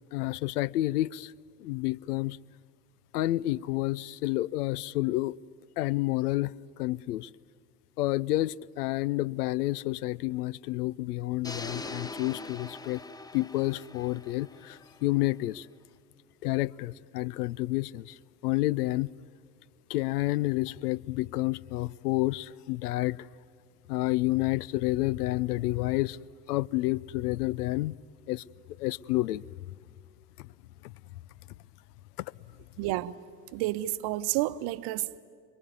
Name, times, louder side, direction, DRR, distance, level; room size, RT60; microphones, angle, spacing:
voice 1, 0.1-1.3 1.6-2.4 3.1-5.4 5.8-7.3 8.0-13.0 13.3-15.7 16.4-19.1 19.9-23.3 23.9-26.2 26.5-27.9 28.3-29.4 30.4-30.5 30.8-30.9 32.2-32.3, left 18 dB, 65° left, 0.6 m, -29 dB
sound 1, 11.4-15.5, left 2 dB, 10° left, 0.7 m, -42 dB
voice 2, 32.8-33.2 33.5-35.2, right 16 dB, 50° right, 1.0 m, -30 dB
27.0 x 22.5 x 9.6 m
figure-of-eight pair, 75°, 50 cm